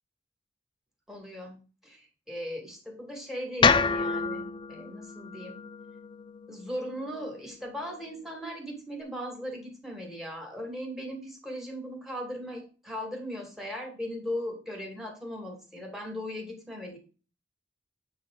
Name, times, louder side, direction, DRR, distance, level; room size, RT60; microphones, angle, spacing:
voice 1, 1.1-1.6 1.8-5.6 6.5-17.0, equal, ahead, 1 dB, 2.4 m, -38 dB
sound 1, 3.6-7.8, left 5 dB, 25° left, 0.4 m, -28 dB
8.5 x 3.9 x 3.8 m, 0.35 s
head